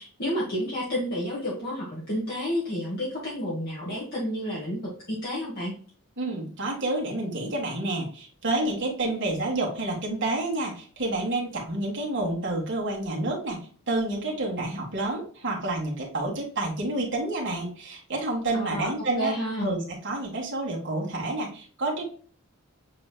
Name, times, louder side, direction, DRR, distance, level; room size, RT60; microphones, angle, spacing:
voice 1, 0.0-4.8 5.1-5.7 18.5-19.7, equal, 45° left, -5 dB, 1.3 m, -30 dB
voice 2, 6.2-19.3 19.6-22.1, right 2 dB, 55° right, -2 dB, 1.9 m, -29 dB
7.5 x 3.1 x 2.2 m, 0.43 s
head